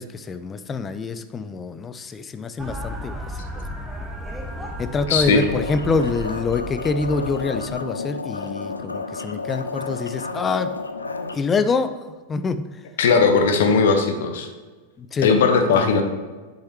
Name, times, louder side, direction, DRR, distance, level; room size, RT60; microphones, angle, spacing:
voice 1, 0.0-3.2 3.6-3.8 4.8-10.7 11.3-12.0 12.3-12.7 15.0-15.3 15.7-16.0, left 4 dB, 20° left, 11 dB, 0.4 m, -26 dB
sound 1, 2.6-7.8, equal, 5° right, 1.0 m, -34 dB
voice 2, 5.1-5.4 13.0-14.5 15.2-16.0, left 4 dB, 60° left, 5 dB, 0.9 m, -18 dB
sound 2, 5.4-11.3, left 4 dB, 80° left, 0.4 m, -31 dB
7.9 x 6.6 x 3.0 m, 1.3 s
figure-of-eight pair, 90°, 0 cm